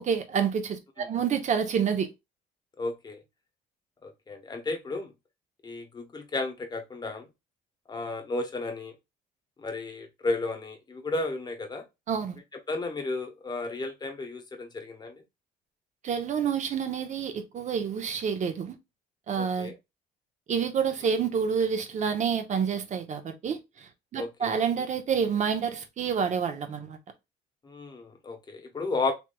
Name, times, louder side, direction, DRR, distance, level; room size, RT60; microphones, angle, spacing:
voice 1, 0.0-2.1 12.1-12.4 16.0-18.7 19.3-19.7 20.5-23.6 24.1-27.0, right 7 dB, 45° right, 0.7 m, -28 dB
voice 2, 2.8-3.2 4.0-5.1 5.6-7.3 7.9-8.9 9.6-11.8 12.7-15.1 19.4-19.8 24.1-24.6 27.6-29.1, left 3 dB, 25° left, 0.9 m, -33 dB
3.2 x 3.1 x 2.2 m
cardioid pair, 110°, 17 cm